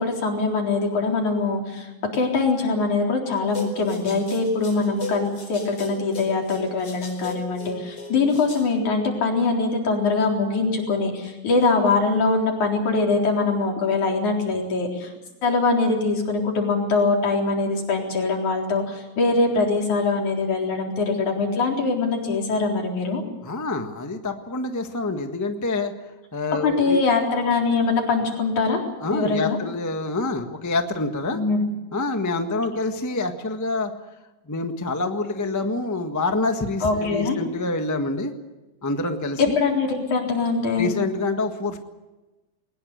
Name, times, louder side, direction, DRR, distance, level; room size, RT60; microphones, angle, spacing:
voice 1, 0.0-15.1 15.4-23.2 26.6-28.8 29.1-29.6 31.3-31.7 36.8-37.4 39.4-40.9, left 3 dB, 85° left, 1 dB, 5.4 m, -23 dB
sound 1, 3.5-8.7, left 2 dB, 50° left, 5.9 m, -36 dB
voice 2, 23.4-25.9 26.3-27.0 29.0-31.4 31.9-33.9 34.5-38.3 38.8-39.5 40.8-41.8, left 2 dB, 10° left, 5 dB, 0.8 m, -26 dB
21.5 x 20.0 x 8.2 m, 1.1 s
omnidirectional pair, 3.3 m